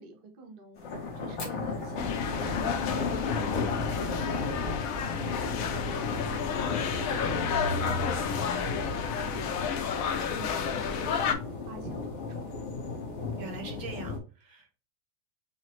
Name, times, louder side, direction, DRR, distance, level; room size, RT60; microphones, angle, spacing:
voice 1, 0.0-3.4 3.6-9.9 10.2-12.5, right 3 dB, 40° right, 2 dB, 0.8 m, -49 dB
sound 1, 0.8-14.2, left 4 dB, 70° left, 1.6 m, -35 dB
Fire, 1.4-5.9 6.1-6.2 6.5-6.6 7.0-7.4 7.9-8.0 9.1-9.2, left 2 dB, 45° left, 0.4 m, -49 dB
sound 2, 2.0-11.3, left 6 dB, 85° left, 0.7 m, -31 dB
voice 2, 5.2-5.5 13.4-14.8, right 3 dB, 80° right, 3 dB, 1.9 m, -43 dB
6.2 x 2.1 x 3.0 m, 0.32 s
omnidirectional pair, 2.1 m